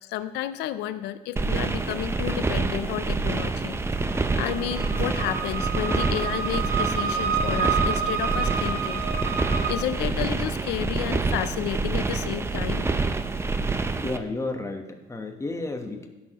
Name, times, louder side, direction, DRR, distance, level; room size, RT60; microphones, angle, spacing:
voice 1, 0.1-3.8 4.3-9.0 9.7-12.9, left 12 dB, 85° left, 12 dB, 0.5 m, -31 dB
sound 1, 1.4-14.2, right 3 dB, 15° right, 0.5 m, -27 dB
sound 2, 4.0-9.7, right 6 dB, 80° right, 1.2 m, -29 dB
voice 2, 14.0-16.1, left 2 dB, 15° left, 5 dB, 1.1 m, -32 dB
15.5 x 6.5 x 3.0 m, 1.1 s
cardioid pair, 110°, 17 cm